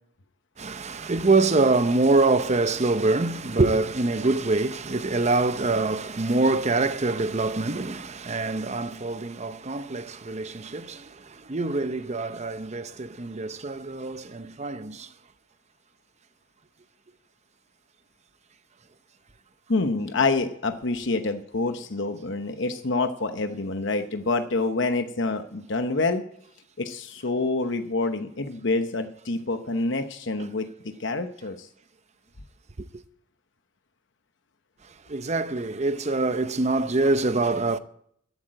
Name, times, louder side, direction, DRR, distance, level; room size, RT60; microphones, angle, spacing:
voice 1, 0.6-15.1 35.1-37.8, right 3 dB, 35° right, 0.8 m, -25 dB
voice 2, 19.7-26.2 26.8-30.7 31.0-31.7, left 3 dB, 65° left, 1.0 m, -27 dB
14.0 x 8.2 x 9.0 m
head